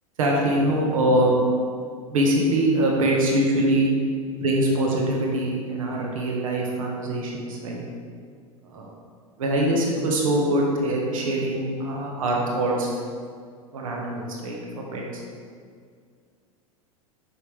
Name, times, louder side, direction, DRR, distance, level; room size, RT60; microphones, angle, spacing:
voice 1, 0.2-1.3 2.1-3.9 4.3-7.8 8.6-8.9 9.4-13.0 13.7-15.2, right 1 dB, 65° right, -2 dB, 1.4 m, -23 dB
7.8 x 6.1 x 3.4 m, 2.1 s
figure-of-eight pair, 85°, 19 cm